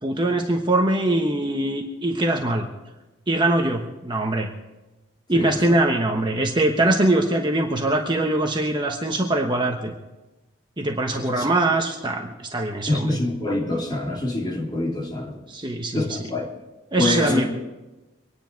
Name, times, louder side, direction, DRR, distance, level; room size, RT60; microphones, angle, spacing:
voice 1, 0.0-2.7 3.3-4.5 5.3-9.9 10.8-13.2 15.5-16.2 16.9-17.5, right 1 dB, 25° right, 1.1 m, -22 dB
voice 2, 12.9-15.4 15.9-16.5 17.0-17.5, left 2 dB, 20° left, 2.9 m, -25 dB
25.0 x 10.0 x 4.6 m
head